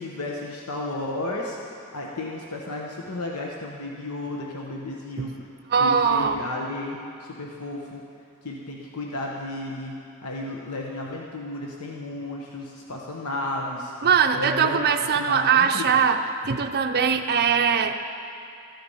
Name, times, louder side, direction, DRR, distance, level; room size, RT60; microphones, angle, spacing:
voice 1, 0.0-1.6 1.9-5.5 5.8-8.0 8.4-13.9 14.3-15.9, left 2 dB, 80° left, -1 dB, 1.1 m, -33 dB
voice 2, 5.7-6.4 14.0-16.2 16.5-18.0, right 6 dB, 45° right, 5 dB, 0.5 m, -21 dB
14.0 x 10.5 x 5.6 m, 2.6 s
head